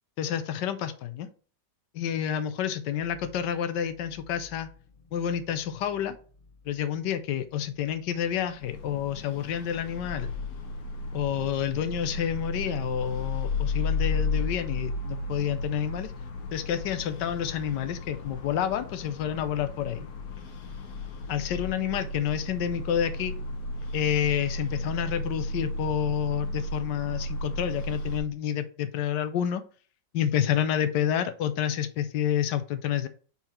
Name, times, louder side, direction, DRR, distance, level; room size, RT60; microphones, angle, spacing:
voice 1, 0.2-1.3 1.9-4.7 5.1-6.2 6.6-10.3 11.1-16.1 16.5-20.1 21.3-23.4 23.9-29.6 30.1-33.1, left 9 dB, 85° left, 11 dB, 1.3 m, -29 dB
sound 1, 2.9-8.7, left 3 dB, 35° left, 1.1 m, -56 dB
sound 2, 8.5-28.2, left 2 dB, 60° left, 1.3 m, -34 dB
5.8 x 4.4 x 4.3 m, 0.40 s
omnidirectional pair, 1.8 m